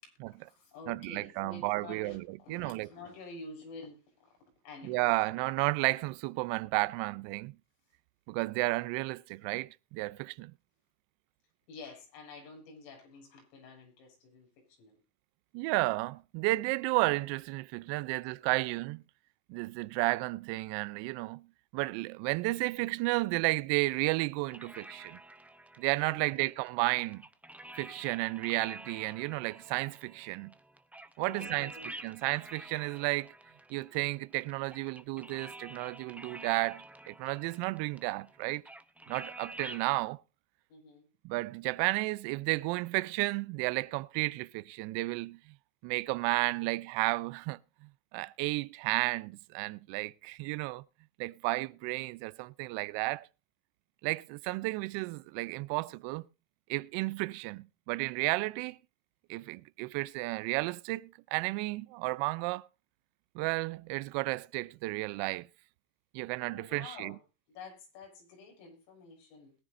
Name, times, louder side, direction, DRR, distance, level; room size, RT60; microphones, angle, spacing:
voice 1, 0.0-4.4 4.6-5.1 11.7-15.0 26.0-26.5 31.2-31.9 40.7-41.1 66.5-67.2 67.5-69.5, left 3 dB, 85° left, 6.6 m, -49 dB
voice 2, 0.9-2.9 4.9-7.5 8.3-10.5 15.5-19.0 19.5-21.5 21.7-25.2 25.8-27.2 27.8-30.5 31.2-33.3 33.7-38.6 39.1-40.2 41.2-45.4 45.8-47.6 48.1-50.8 51.2-53.3 54.0-56.2 56.7-58.8 59.3-62.7 63.3-65.5 66.1-67.1, right 22 dB, 60° right, 0.7 m, -32 dB
sound 1, 24.5-39.9, right 1 dB, 5° right, 0.6 m, -49 dB
21.5 x 9.8 x 2.6 m
supercardioid pair, 115°, 48 cm